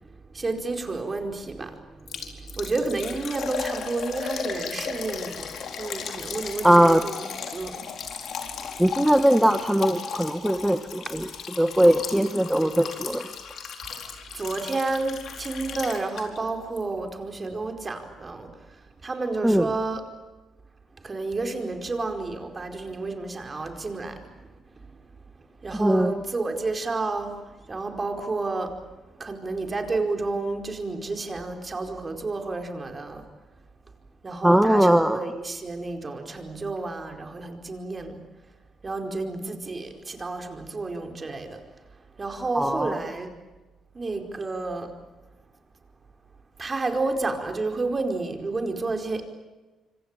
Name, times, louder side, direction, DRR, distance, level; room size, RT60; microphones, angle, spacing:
voice 1, 0.3-7.2 7.5-7.8 14.3-20.0 21.0-24.3 25.6-27.4 27.7-28.8 29.2-33.2 34.2-38.2 38.8-41.6 42.2-43.3 43.9-44.9 46.6-49.2, right 3 dB, 30° right, 5 dB, 4.7 m, -30 dB
Liquid, 2.1-16.5 16.8-16.9 17.3-17.4, left 6 dB, 65° left, 4.3 m, -36 dB
voice 2, 6.6-7.0 8.8-11.3 11.6-13.3 19.4-19.7 25.8-26.1 34.4-35.2 42.5-43.0, right 1 dB, 5° right, 7 dB, 1.4 m, -20 dB
26.0 x 25.5 x 8.9 m, 1.2 s
cardioid pair, 90°, 0 cm